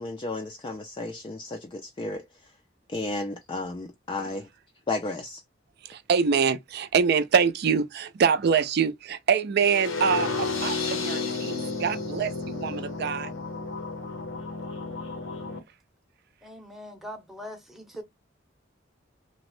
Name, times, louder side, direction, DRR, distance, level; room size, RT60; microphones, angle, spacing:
voice 1, 0.0-2.2 2.9-4.5 4.9-5.4, left 2 dB, 25° left, 0.3 m, -33 dB
voice 2, 5.8-13.3, right 6 dB, 55° right, 0.4 m, -25 dB
sound 1, 9.6-15.6, left 4 dB, 85° left, 0.8 m, -32 dB
voice 3, 16.4-18.0, equal, ahead, 0.7 m, -41 dB
2.9 x 2.1 x 3.0 m
head